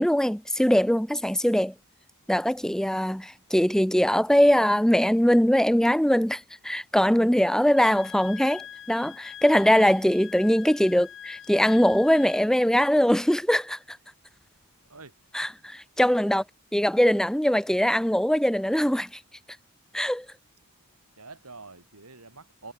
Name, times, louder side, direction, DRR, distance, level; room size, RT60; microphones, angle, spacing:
voice 1, 0.0-1.7 2.3-14.0 15.3-16.4 16.7-19.2 19.9-20.3, equal, 5° left, 0.9 m, -22 dB
Wind instrument woodwind instrument, 7.8-12.5, left 10 dB, 60° left, 3.4 m, -43 dB
voice 2, 21.2-22.7, right 3 dB, 85° right, 5.1 m, -46 dB
head